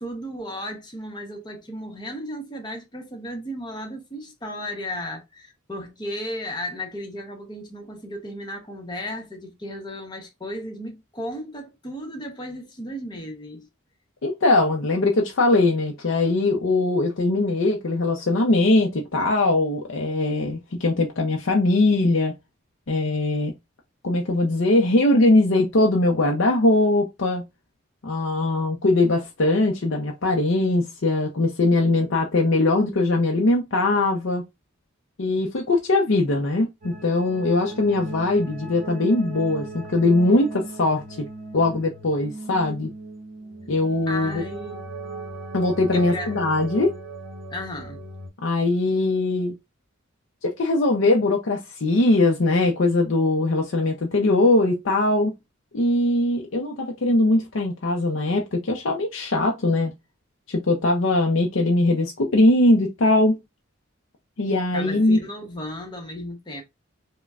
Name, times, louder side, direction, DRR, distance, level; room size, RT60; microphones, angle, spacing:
voice 1, 0.0-13.7 44.1-44.9 45.9-46.3 47.5-48.0 64.7-66.6, left 1 dB, 20° left, 0.9 m, -34 dB
voice 2, 14.2-22.3 22.9-23.5 24.0-27.4 28.0-34.4 35.2-41.3 41.5-42.9 43.7-44.4 45.5-46.9 48.4-49.5 50.4-55.3 55.7-59.9 60.5-63.4 64.4-65.2, left 2 dB, 65° left, 0.6 m, -21 dB
sound 1, 36.8-48.3, right 3 dB, 45° right, 1.2 m, -37 dB
5.1 x 2.2 x 2.4 m
head